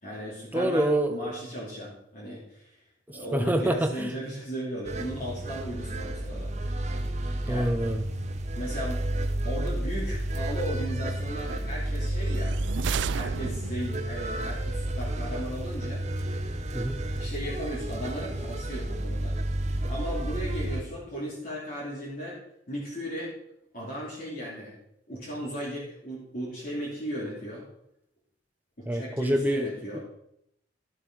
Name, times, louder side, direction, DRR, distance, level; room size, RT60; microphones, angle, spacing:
voice 1, 0.0-2.8 3.1-6.8 7.4-7.7 8.6-9.1 9.4-12.6 13.1-16.1 17.2-22.4 22.7-23.3 23.7-24.7 25.1-27.6 28.8-30.0, equal, 45° left, -7 dB, 2.9 m, -36 dB
voice 2, 0.5-1.3 3.3-4.1 7.4-8.0 16.7-17.0 28.9-29.7, right 1 dB, 10° right, 5 dB, 0.8 m, -26 dB
sound 1, 4.8-20.8, right 1 dB, 35° right, 0.8 m, -31 dB
sound 2, 12.2-14.0, right 7 dB, 65° right, 0.3 m, -33 dB
12.0 x 7.5 x 4.6 m, 0.76 s
head